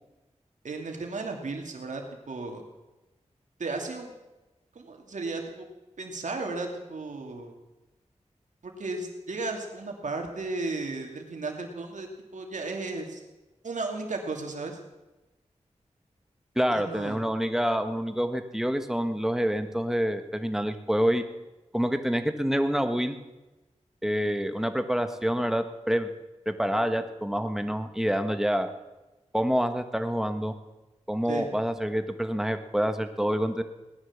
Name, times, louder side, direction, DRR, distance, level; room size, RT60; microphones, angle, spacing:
voice 1, 0.6-2.6 3.6-4.1 4.7-5.7 6.0-7.5 8.6-13.2 13.6-14.8 16.7-17.2 31.3-31.5, right 3 dB, 85° right, 3 dB, 2.7 m, -34 dB
voice 2, 16.5-21.2 21.7-23.2 24.0-26.1 26.4-28.7 29.3-30.5 31.1-33.6, equal, 5° right, 8 dB, 1.5 m, -27 dB
18.5 x 10.5 x 7.4 m, 1.1 s
wide cardioid pair, 65°, 12 cm